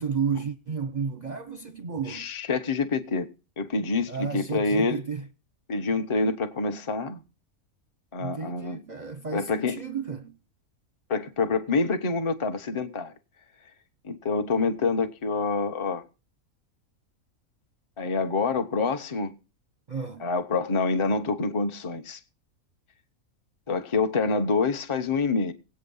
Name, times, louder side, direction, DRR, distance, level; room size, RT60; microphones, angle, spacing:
voice 1, 0.0-2.3 4.1-5.3 8.2-10.4 19.9-20.3, right 6 dB, 40° right, 0.7 m, -32 dB
voice 2, 2.1-3.3 3.6-5.0 5.7-7.2 8.1-8.8 9.3-9.8 11.1-13.1 14.0-16.0 18.0-19.3 20.2-22.2 23.7-25.5, left 4 dB, 25° left, 0.8 m, -26 dB
18.0 x 8.6 x 5.5 m
omnidirectional pair, 1.5 m